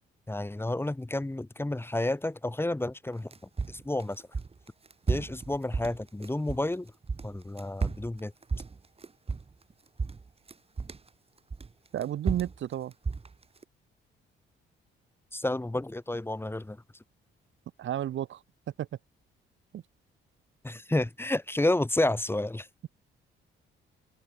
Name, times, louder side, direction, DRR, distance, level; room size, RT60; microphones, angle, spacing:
voice 1, 0.3-3.3 3.7-4.2 5.1-6.9 7.2-8.3 15.3-16.8 20.6-22.7, left 1 dB, 10° left, 5.7 m, -30 dB
sound 1, 3.1-6.7 7.0-9.7 10.0-11.1 11.5-13.6, right 4 dB, 30° right, 5.8 m, -33 dB
voice 2, 11.9-12.9 17.8-18.4 18.8-18.9 19.7-19.8, right 11 dB, 70° right, 6.4 m, -32 dB
cardioid pair, 90°, 20 cm